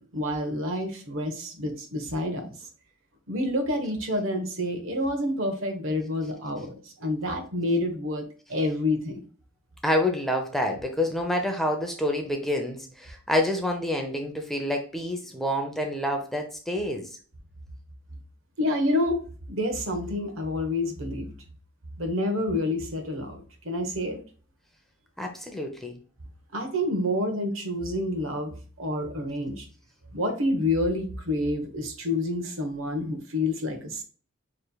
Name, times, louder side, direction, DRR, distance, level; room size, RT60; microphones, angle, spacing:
voice 1, 0.0-2.5 3.3-9.2 18.6-19.2 19.5-21.3 22.0-24.2 26.5-29.7 30.1-34.0, left 1 dB, 75° right, 5 dB, 1.1 m, -28 dB
voice 2, 9.8-17.2 25.2-26.0, left 1 dB, ahead, 2 dB, 0.6 m, -28 dB
6.8 x 3.3 x 2.3 m, 0.40 s
head